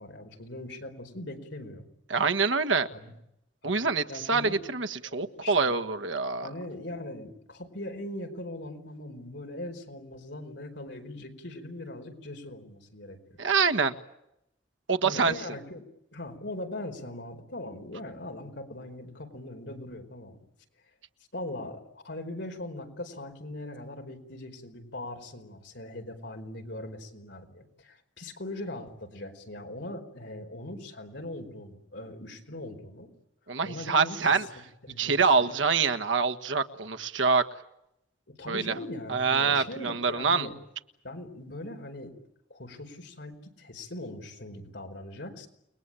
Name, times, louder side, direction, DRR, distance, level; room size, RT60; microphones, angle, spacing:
voice 1, 0.0-1.8 2.9-3.1 3.6-3.7 4.1-4.6 5.0-5.8 6.4-13.4 15.0-15.8 16.1-20.4 21.3-33.1 33.6-34.4 34.8-35.5 38.3-40.5 41.0-42.1 42.5-45.5, left 1 dB, 65° left, 4 dB, 4.7 m, -40 dB
voice 2, 2.1-2.9 3.6-6.5 13.4-13.9 14.9-15.3 33.5-34.5 35.0-37.4 38.5-38.7 39.1-40.5, right 4 dB, 90° right, 8 dB, 1.6 m, -25 dB
29.5 x 21.0 x 9.0 m, 0.83 s
head